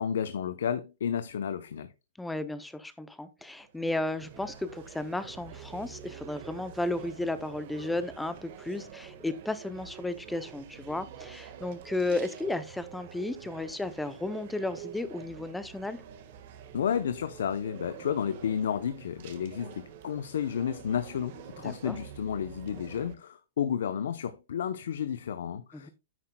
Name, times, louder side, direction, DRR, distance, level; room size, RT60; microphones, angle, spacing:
voice 1, 0.0-1.9 16.7-25.9, left 8 dB, 75° left, 0.7 m, -32 dB
voice 2, 2.2-16.0 21.6-22.0 25.7-25.9, left 2 dB, 5° left, 0.5 m, -34 dB
sound 1, 3.4-23.1, right 9 dB, 45° right, 1.5 m, -47 dB
10.5 x 8.8 x 2.2 m
hypercardioid pair, 160°, 0 cm